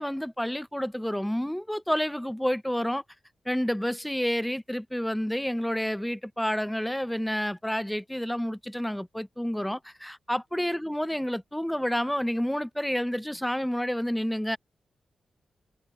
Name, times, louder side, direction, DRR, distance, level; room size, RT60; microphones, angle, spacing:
voice 1, 0.0-3.0 3.5-14.6, equal, 5° left, 0.7 m, -29 dB
supercardioid pair, 45°, 0 cm